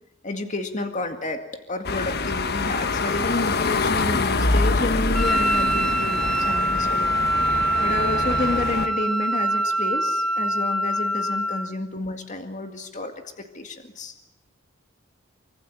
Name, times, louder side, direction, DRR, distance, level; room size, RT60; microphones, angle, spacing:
voice 1, 0.2-7.1 7.8-14.1, left 2 dB, 40° left, 6 dB, 2.2 m, -30 dB
sound 1, 1.8-8.9, left 3 dB, 55° left, 1.3 m, -25 dB
Wind instrument woodwind instrument, 5.1-11.7, right 1 dB, ahead, 1.4 m, -24 dB
25.0 x 24.5 x 8.8 m, 0.87 s
head